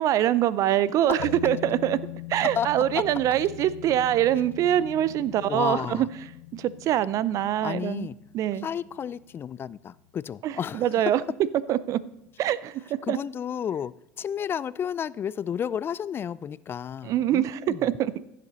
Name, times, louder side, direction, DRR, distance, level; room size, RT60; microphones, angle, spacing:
voice 1, 0.0-2.0 2.3-6.1 6.5-8.1 8.3-8.7 10.4-11.2 11.7-12.0 12.4-13.2 17.0-18.1, right 11 dB, 50° right, 18 dB, 0.6 m, -24 dB
sound 1, 1.2-10.3 10.6-10.7, left 13 dB, 80° left, 1.1 m, -42 dB
voice 2, 5.5-6.1 7.6-8.2 8.6-10.9 13.1-17.9, left 8 dB, 35° left, 20 dB, 0.3 m, -32 dB
15.5 x 7.6 x 4.1 m, 0.87 s
supercardioid pair, 90°, 7 cm